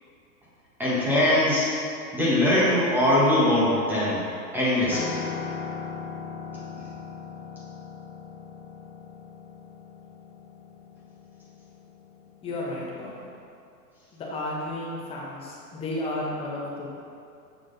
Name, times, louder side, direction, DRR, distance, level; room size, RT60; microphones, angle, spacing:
voice 1, 0.8-1.7 2.1-4.2 4.5-5.1, left 1 dB, 5° right, -9 dB, 1.2 m, -21 dB
Piano, 4.9-13.2, left 5 dB, 60° left, 1.2 m, -39 dB
voice 2, 12.4-13.3 14.1-16.9, left 1 dB, 10° left, -4 dB, 0.8 m, -33 dB
7.5 x 6.0 x 3.9 m, 2.5 s
hypercardioid pair, 150°, 50 cm